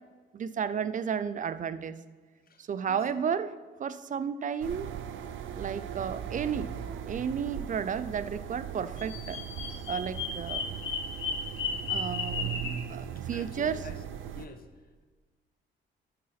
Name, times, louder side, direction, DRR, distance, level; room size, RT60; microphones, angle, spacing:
voice 1, 0.3-2.0 2.6-3.5 3.8-4.9 5.5-6.7 7.0-9.4 9.9-10.7 11.9-13.9, right 7 dB, 40° right, 14 dB, 0.5 m, -33 dB
voice 2, 2.5-3.0 13.3-14.0 14.3-14.6, left 5 dB, 50° left, 8 dB, 1.1 m, -47 dB
sound 1, 4.6-14.5, right 9 dB, 80° right, 0.7 m, -39 dB
Bird vocalization bird call bird song, 9.0-12.8, left 5 dB, 75° left, 1.4 m, -34 dB
12.0 x 6.6 x 4.1 m, 1.4 s
cardioid pair, 90°, 20 cm